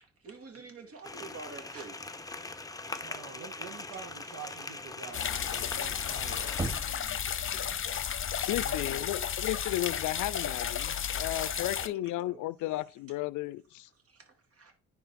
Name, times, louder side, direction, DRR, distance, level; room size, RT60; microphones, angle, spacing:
voice 1, 0.2-2.0 7.3-7.4 7.9-8.0 8.8-9.1 11.7-12.4 14.0-14.7, right 4 dB, 50° right, 2.6 m, -47 dB
sound 1, 1.0-6.8, left 3 dB, 10° left, 0.7 m, -42 dB
voice 2, 3.0-6.6 8.5-9.1, right 7 dB, 75° right, 1.6 m, -47 dB
sound 2, 5.1-11.9, left 8 dB, 45° left, 0.8 m, -33 dB
Knock, 6.6-7.5, right 2 dB, 15° right, 1.1 m, -36 dB
voice 3, 8.5-13.9, left 16 dB, 80° left, 0.5 m, -34 dB
9.9 x 4.3 x 4.2 m
cardioid pair, 90°, 30 cm